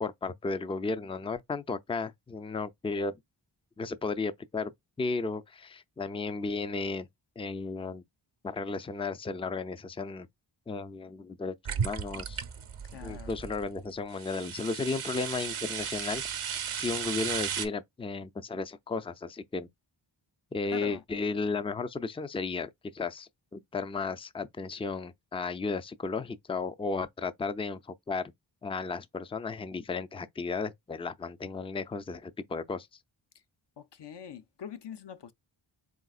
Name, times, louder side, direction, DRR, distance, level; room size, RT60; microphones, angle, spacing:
voice 1, 0.0-3.1 3.8-4.7 5.0-7.1 7.4-8.0 8.4-10.3 10.7-12.4 13.0-16.2 16.7-19.7 20.5-28.3 28.6-32.9, left 4 dB, 15° left, 0.4 m, -34 dB
sound 1, 11.6-13.7 14.1-17.7, right 7 dB, 75° right, 0.8 m, -35 dB
voice 2, 12.9-13.3 20.6-21.0 33.8-35.3, left 7 dB, 55° left, 0.6 m, -43 dB
4.0 x 3.8 x 2.4 m
cardioid pair, 40°, 50 cm